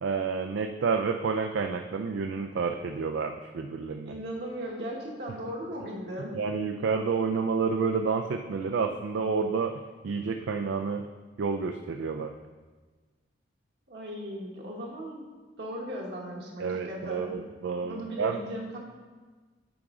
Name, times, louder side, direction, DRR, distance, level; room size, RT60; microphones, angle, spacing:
voice 1, 0.0-4.1 6.3-9.8 10.0-11.0 11.4-12.3 16.6-18.4, right 5 dB, 85° right, 5 dB, 0.4 m, -29 dB
voice 2, 4.0-6.4 13.9-15.2 15.6-17.4 17.8-18.8, equal, 65° right, -3 dB, 1.3 m, -37 dB
8.6 x 4.9 x 3.6 m, 1.3 s
head